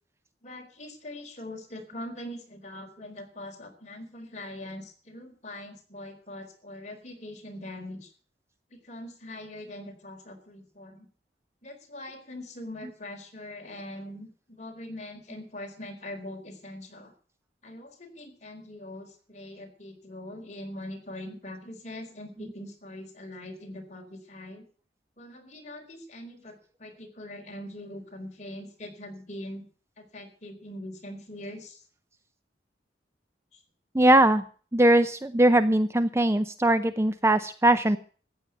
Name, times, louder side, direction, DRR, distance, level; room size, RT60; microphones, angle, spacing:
voice 1, 0.4-8.1 8.7-11.1 11.6-17.1 17.6-24.6 25.2-29.6 30.0-31.8 33.5-33.6, left 1 dB, 40° left, 4 dB, 4.2 m, -42 dB
voice 2, 33.9-34.4 34.7-38.0, right 1 dB, 15° right, 12 dB, 0.6 m, -21 dB
14.5 x 9.0 x 9.1 m, 0.42 s
head